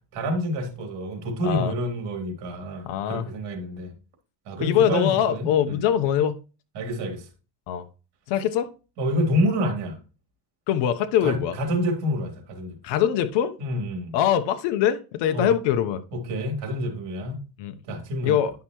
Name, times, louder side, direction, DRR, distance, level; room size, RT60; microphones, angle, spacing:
voice 1, 0.1-3.9 4.5-5.8 6.7-7.3 9.0-10.0 11.2-12.8 13.6-14.2 15.3-15.5 16.1-17.4 17.9-18.3, equal, 55° right, 3.3 m, -28 dB
voice 2, 2.9-3.3 4.6-6.4 7.7-7.8 8.3-8.7 10.7-11.5 12.8-13.5 14.1-16.0 17.6-17.7 18.2-18.5, left 10 dB, 60° left, 1.1 m, -23 dB
11.0 x 5.7 x 3.1 m
cardioid pair, 135°, 48 cm